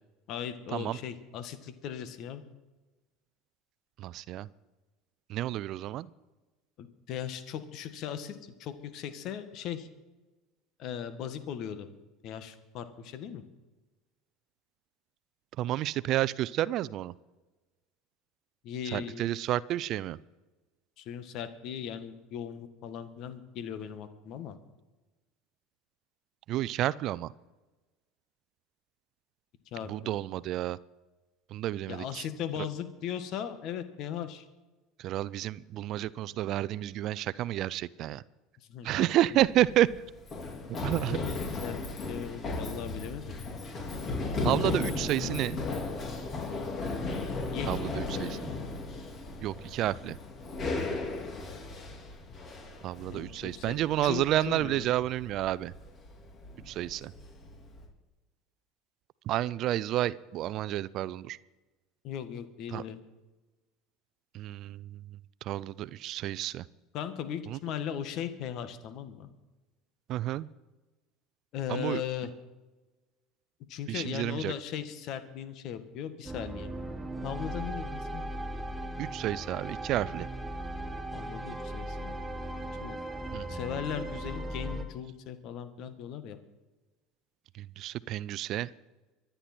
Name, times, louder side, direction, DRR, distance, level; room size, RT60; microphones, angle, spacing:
voice 1, 0.3-2.4 6.8-9.9 10.8-11.9 12.2-13.4 18.6-19.3 21.0-24.6 29.7-30.2 31.9-34.5 38.7-39.4 41.1-41.4 41.6-41.8 42.1-43.4 47.5-47.7 53.1-54.9 62.0-63.0 66.9-69.3 71.5-72.3 73.7-76.7 77.2-78.2 81.1-82.2 82.8-83.0 83.5-86.4, left 9 dB, 55° left, 10 dB, 1.8 m, -38 dB
voice 2, 4.0-4.5 5.3-6.1 15.6-17.1 18.9-20.2 26.5-27.3 29.9-30.8 31.5-32.2 35.0-38.2 38.8-39.9 40.8-41.2 44.4-45.6 47.7-48.5 49.4-50.2 52.8-55.7 56.7-57.1 59.3-61.4 62.7-62.8 64.3-64.9 65.4-66.6 67.5-67.6 70.1-70.5 71.7-72.0 73.9-74.5 79.0-80.3 83.3-83.5 87.6-88.7, right 14 dB, 55° right, 20 dB, 0.5 m, -30 dB
Run, 39.3-57.9, left 3 dB, 40° left, 4.3 m, -36 dB
sound 1, 76.2-84.8, right 1 dB, 10° right, 2.5 m, -38 dB
24.0 x 10.0 x 4.5 m, 1.1 s
hypercardioid pair, 75°, 0 cm